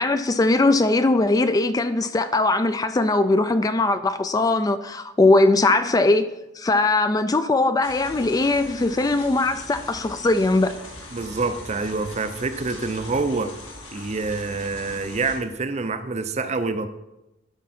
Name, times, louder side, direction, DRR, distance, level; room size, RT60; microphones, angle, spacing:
voice 1, 0.0-6.3 6.6-10.7, left 2 dB, 20° left, 11 dB, 0.3 m, -20 dB
sound 1, 7.8-15.4, left 2 dB, 80° left, 2.6 m, -41 dB
voice 2, 11.1-13.6 13.9-16.9, right 3 dB, 35° right, 10 dB, 0.5 m, -26 dB
11.5 x 4.7 x 4.2 m, 0.93 s
head